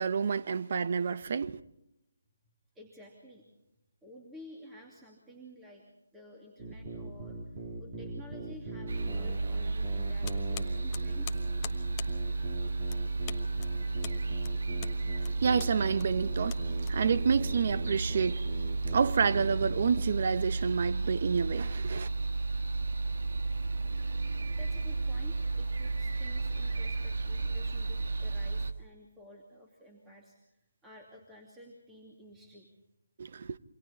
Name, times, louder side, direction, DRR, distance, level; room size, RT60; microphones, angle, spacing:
voice 1, 0.0-1.6 15.4-16.6 16.9-18.4 18.9-22.1 33.2-33.6, right 6 dB, 45° right, 1.0 m, -29 dB
voice 2, 2.7-3.4 4.0-5.8 6.1-7.5 7.8-11.5 23.2-23.3 24.5-32.7, left 1 dB, 10° right, 2.7 m, -53 dB
sound 1, 6.6-20.1, right 2 dB, 30° right, 3.7 m, -42 dB
sound 2, 8.9-28.7, right 3 dB, 60° right, 1.5 m, -33 dB
sound 3, 10.2-17.4, left 11 dB, 25° left, 1.1 m, -47 dB
28.5 x 24.5 x 4.3 m
figure-of-eight pair, 150°, 0 cm